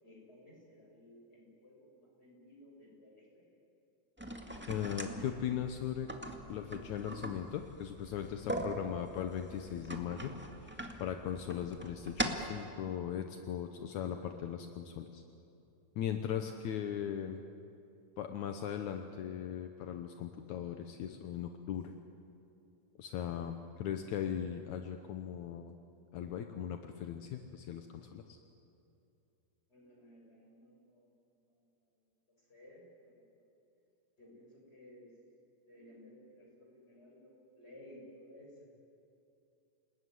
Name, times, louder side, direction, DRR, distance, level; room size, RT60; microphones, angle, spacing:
voice 1, 0.0-3.4 29.7-31.2 31.5-32.0 32.4-33.5 34.2-35.1 35.6-38.7, left 1 dB, 20° left, -1 dB, 6.8 m, -57 dB
sound 1, 4.2-12.6, right 1 dB, 5° right, 1.0 m, -42 dB
voice 2, 4.7-6.1 6.5-15.2 16.0-17.4 18.2-21.9 23.0-25.7 26.1-28.4, left 9 dB, 75° left, 6 dB, 2.3 m, -39 dB
29.5 x 19.5 x 9.5 m, 2.7 s
omnidirectional pair, 3.6 m